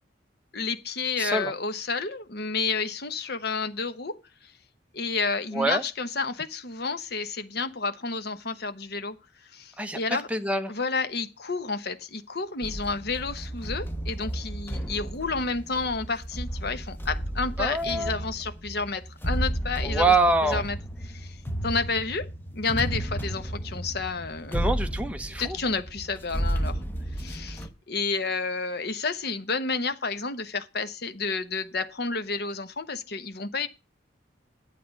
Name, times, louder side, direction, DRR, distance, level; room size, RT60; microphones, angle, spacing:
voice 1, 0.5-4.2 4.4-4.5 4.9-9.2 9.5-10.3 10.7-20.2 20.4-24.7 25.4-26.8 27.1-33.7, left 4 dB, 55° left, 1.0 m, -30 dB
voice 2, 1.2-1.5 5.5-5.8 9.8-10.0 10.3-10.7 17.6-18.2 19.8-20.6 24.5-25.6, right 2 dB, 5° right, 1.0 m, -25 dB
sound 1, 12.6-27.7, right 1 dB, 10° left, 1.0 m, -33 dB
10.0 x 8.5 x 5.3 m
head